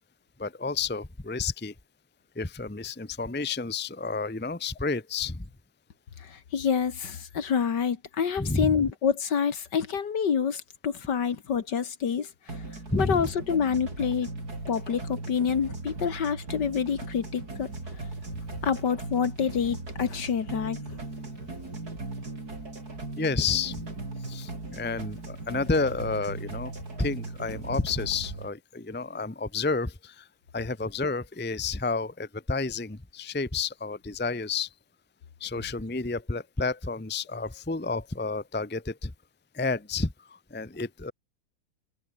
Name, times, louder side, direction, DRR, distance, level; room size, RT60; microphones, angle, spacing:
voice 1, 0.4-1.7 2.3-5.5 8.4-8.8 12.9-13.3 23.2-23.8 24.2-26.7 27.0-30.3 30.5-34.7 35.4-39.1 39.5-41.1, left 4 dB, 5° left, 0.9 m, -30 dB
voice 2, 6.2-12.3 13.0-14.3 14.7-17.7 18.6-20.8, left 7 dB, 55° left, 2.2 m, -27 dB
sound 1, 12.5-28.5, right 2 dB, 45° right, 5.7 m, -38 dB
omnidirectional pair, 2.2 m